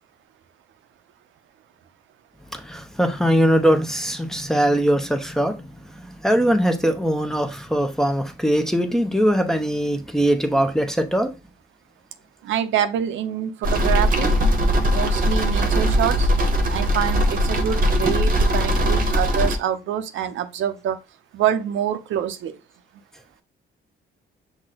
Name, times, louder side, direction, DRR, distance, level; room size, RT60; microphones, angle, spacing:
voice 1, 2.5-11.4, equal, ahead, 0.6 m, -21 dB
voice 2, 12.4-14.3 14.9-16.3 16.7-21.0 21.3-22.5, right 9 dB, 75° right, 0.6 m, -26 dB
sound 1, 13.6-19.6, equal, 45° right, 0.9 m, -20 dB
5.9 x 2.1 x 3.8 m
cardioid pair, 90°, 20 cm